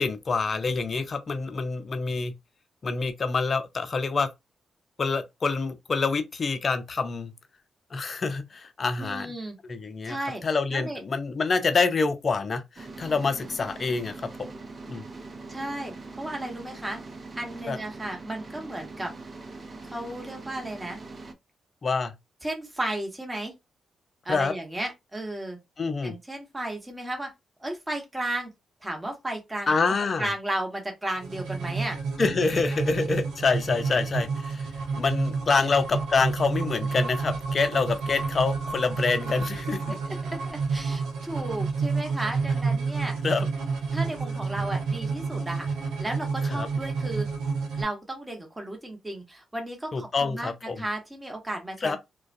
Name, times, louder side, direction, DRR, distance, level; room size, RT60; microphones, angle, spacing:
voice 1, 0.0-2.3 2.8-4.3 5.0-7.3 7.9-9.3 9.6-10.2 10.4-14.3 14.9-15.0 17.7-17.8 21.8-22.1 24.3-24.5 25.8-26.2 29.7-30.3 32.2-34.7 35.0-40.0 43.2-43.5 46.5-46.7 49.9-50.8 51.8-52.0, left 4 dB, 50° left, 0.5 m, -26 dB
voice 2, 9.0-9.6 10.0-10.4 10.7-11.0 15.5-17.0 17.4-19.1 19.8-21.0 22.4-23.5 24.2-25.6 26.0-27.3 27.6-28.5 28.8-29.7 30.2-32.0 35.6-35.7 39.9-40.2 40.4-43.2 43.9-45.7 46.0-47.3 47.8-52.0, right 1 dB, 20° right, 1.1 m, -34 dB
sound 1, 12.8-21.3, right 3 dB, 45° right, 0.6 m, -42 dB
sound 2, 31.2-47.8, right 4 dB, 85° right, 0.7 m, -30 dB
2.3 x 2.2 x 2.6 m
supercardioid pair, 50°, 0 cm